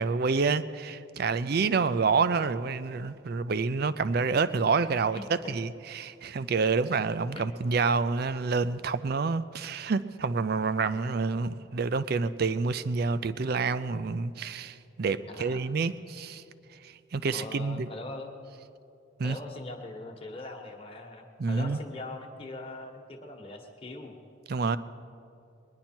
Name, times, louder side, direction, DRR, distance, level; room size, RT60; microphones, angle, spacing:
voice 1, 0.0-5.2 5.5-16.4 16.8-17.9 19.2-19.4 21.4-21.8 24.5-24.8, right 4 dB, 50° right, 13 dB, 0.4 m, -28 dB
voice 2, 5.1-5.5 7.3-7.5 15.3-15.6 17.3-18.4 19.2-24.2, left 2 dB, 25° left, 2 dB, 1.3 m, -41 dB
21.0 x 10.5 x 4.4 m, 2.6 s
head